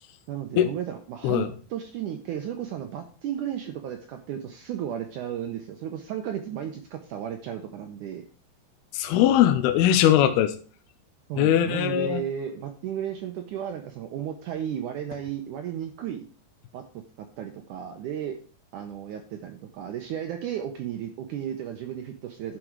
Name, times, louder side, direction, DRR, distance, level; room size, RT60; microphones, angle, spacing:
voice 1, 0.3-8.2 11.3-16.3 16.7-18.4 18.7-22.6, right 10 dB, 80° right, 6 dB, 1.8 m, -34 dB
voice 2, 8.9-10.5 11.4-12.2, left 11 dB, 85° left, 8 dB, 2.6 m, -20 dB
12.0 x 5.0 x 4.6 m, 0.40 s
omnidirectional pair, 4.6 m